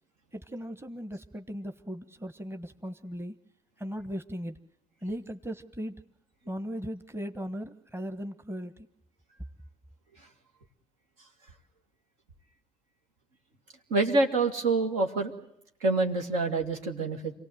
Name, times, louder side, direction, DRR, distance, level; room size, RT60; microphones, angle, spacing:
voice 1, 0.3-3.3 3.8-4.6 5.0-5.9 6.4-8.9, equal, 15° right, 10 dB, 1.3 m, -37 dB
voice 2, 13.9-15.3 15.8-17.3, right 3 dB, 75° right, 3 dB, 2.3 m, -26 dB
27.5 x 18.0 x 7.9 m, 0.81 s
figure-of-eight pair, 50°, 18 cm